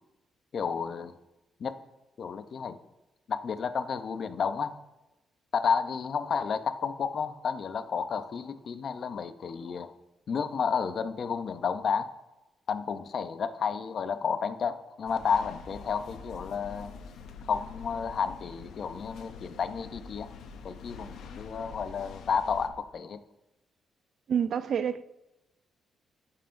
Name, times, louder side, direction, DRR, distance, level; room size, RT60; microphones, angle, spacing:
voice 1, 0.5-1.1 1.6-1.7 2.2-2.8 3.3-4.8 5.5-9.9 10.3-12.1 12.7-16.9 17.5-20.3 20.6-23.2, left 6 dB, 50° left, 0.5 m, -31 dB
sound 1, 15.1-22.7, left 5 dB, 85° left, 0.7 m, -46 dB
voice 2, 24.3-25.0, right 8 dB, 55° right, 0.3 m, -27 dB
15.5 x 5.6 x 2.5 m
cardioid pair, 125°, 0 cm